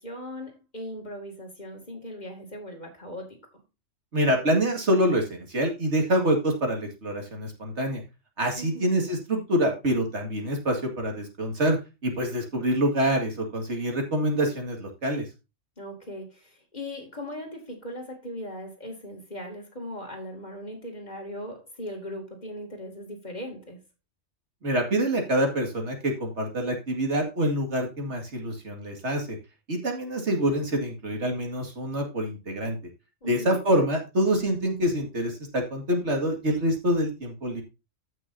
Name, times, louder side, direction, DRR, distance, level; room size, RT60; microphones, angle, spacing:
voice 1, 0.0-3.6 8.6-9.0 15.8-23.8 33.2-33.6, left 1 dB, 35° left, 2.8 m, -39 dB
voice 2, 4.1-8.0 8.4-11.8 12.0-15.3 24.6-29.4 29.7-32.8 33.3-37.6, equal, 65° right, 2.5 m, -26 dB
15.0 x 6.2 x 2.8 m
omnidirectional pair, 1.3 m